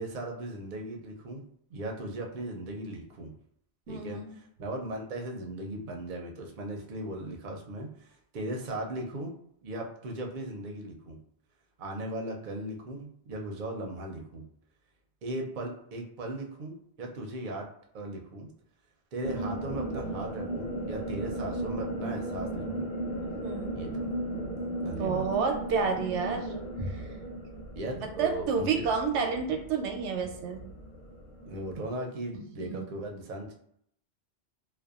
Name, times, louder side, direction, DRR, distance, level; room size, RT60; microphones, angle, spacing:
voice 1, 0.0-1.4 1.7-3.3 3.9-4.2 4.6-9.3 9.6-11.2 11.8-14.4 15.2-17.7 17.9-18.5 19.1-22.9 23.7-24.1 24.8-25.3 27.8-28.9 31.5-33.5, right 1 dB, 55° right, 2 dB, 0.6 m, -37 dB
voice 2, 3.9-4.3 23.4-23.7 25.0-26.6 26.9-27.2 28.0-30.6 32.3-32.9, right 5 dB, 90° right, 3 dB, 0.9 m, -30 dB
sound 1, 19.2-31.9, right 1 dB, 70° left, 1.0 m, -36 dB
2.6 x 2.1 x 2.3 m, 0.69 s
omnidirectional pair, 1.1 m